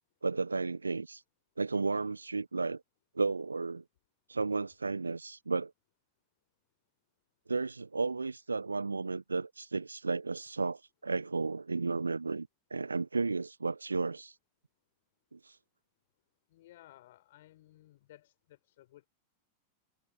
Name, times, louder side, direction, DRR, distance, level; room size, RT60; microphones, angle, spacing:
voice 1, 0.2-1.2 1.6-2.8 3.1-3.8 4.3-5.7 7.5-14.4 15.3-15.6, right 4 dB, 80° right, 1.2 m, -33 dB
voice 2, 16.5-19.1, left 15 dB, 55° left, 4.3 m, -58 dB
figure-of-eight pair, 90°, 0 cm